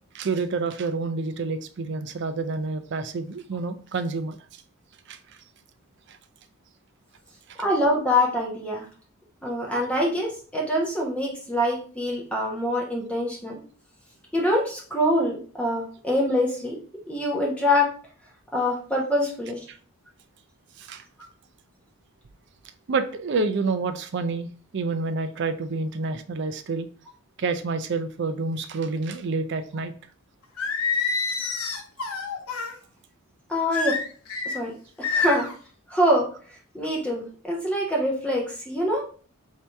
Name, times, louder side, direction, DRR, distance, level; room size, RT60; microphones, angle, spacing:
voice 1, 0.1-4.4 5.1-5.2 6.1-6.2 19.7-19.8 20.8-21.0 22.9-26.9 27.4-29.9, right 3 dB, 50° right, 0.4 m, -28 dB
voice 2, 7.6-8.8 9.4-13.6 14.3-16.8 17.1-17.9 18.5-19.6 33.5-34.0 34.4-34.7 35.0-35.5 35.9-36.3 36.7-39.0, left 1 dB, 5° left, 1.0 m, -24 dB
Singing, 30.6-32.7 33.7-34.6 35.0-35.5, left 4 dB, 75° left, 0.8 m, -27 dB
3.4 x 2.8 x 4.4 m
head